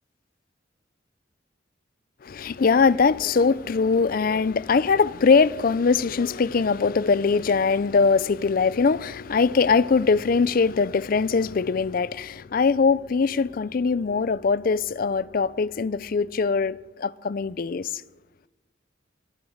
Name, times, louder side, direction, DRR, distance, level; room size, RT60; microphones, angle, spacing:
voice 1, 2.3-17.9, left 5 dB, 50° left, 0.4 m, -22 dB
24.0 x 9.4 x 6.5 m
head